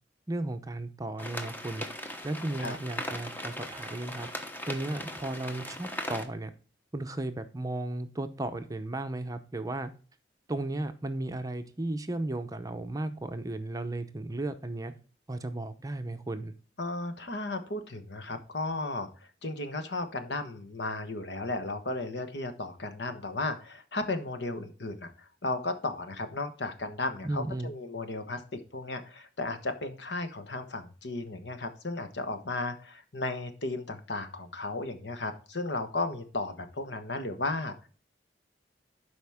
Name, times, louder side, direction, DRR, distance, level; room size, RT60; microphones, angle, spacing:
voice 1, 0.3-1.9 2.2-4.3 4.6-6.5 6.9-9.9 10.5-14.9 15.3-16.5 27.2-27.7, right 2 dB, 20° right, 9 dB, 0.7 m, -35 dB
sound 1, 1.2-6.3, left 1 dB, 10° left, 1.0 m, -39 dB
voice 2, 16.8-19.1 19.4-37.9, left 2 dB, 70° left, 8 dB, 1.3 m, -35 dB
12.0 x 5.0 x 3.5 m, 0.38 s
head